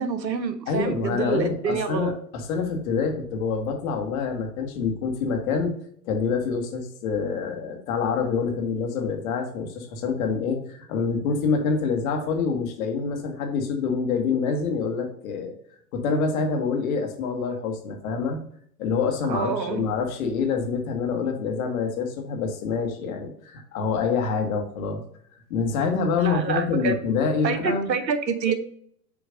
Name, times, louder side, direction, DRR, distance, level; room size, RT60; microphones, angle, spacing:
voice 1, 0.0-2.1 19.3-19.9 26.2-27.0 27.4-28.5, right 5 dB, 85° right, 0.9 m, -27 dB
voice 2, 0.7-5.7 6.0-15.5 15.9-18.4 18.8-25.0 25.5-27.9, left 5 dB, 55° left, 1.5 m, -26 dB
7.1 x 3.1 x 5.0 m
hypercardioid pair, 100°, 50 cm